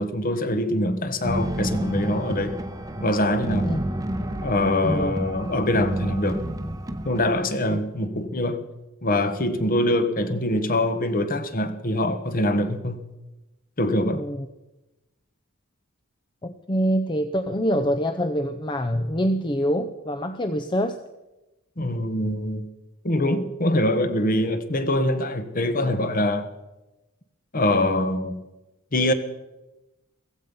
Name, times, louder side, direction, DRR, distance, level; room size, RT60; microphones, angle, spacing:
voice 1, 0.0-2.6 3.0-3.7 4.4-6.4 7.0-8.6 9.0-13.0 13.8-14.2 21.8-22.6 23.0-26.5 27.5-28.4 28.9-29.1, left 1 dB, 40° left, 1.3 m, -24 dB
sound 1, 1.2-7.4, right 1 dB, 15° right, 0.9 m, -30 dB
voice 2, 4.8-5.1 7.7-7.8 14.1-14.5 16.4-21.0, equal, 20° left, 0.6 m, -25 dB
15.5 x 15.5 x 5.4 m
head